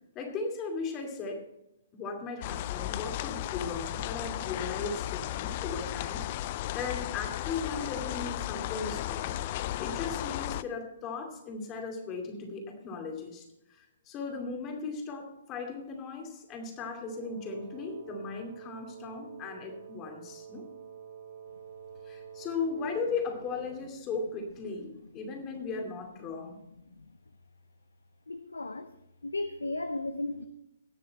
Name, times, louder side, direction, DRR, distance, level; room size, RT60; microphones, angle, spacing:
voice 1, 0.1-1.4 1.9-9.4 9.8-20.6 22.1-26.6, left 4 dB, 25° left, 3 dB, 2.5 m, -37 dB
sound 1, 2.4-10.6, left 14 dB, 40° left, 0.4 m, -35 dB
Wind instrument woodwind instrument, 17.1-23.9, right 8 dB, 50° right, 2.3 m, -48 dB
voice 2, 28.3-28.9 29.2-30.5, left 2 dB, 85° left, 10 dB, 0.7 m, -34 dB
18.0 x 6.8 x 4.3 m, 0.84 s
hypercardioid pair, 130°, 0 cm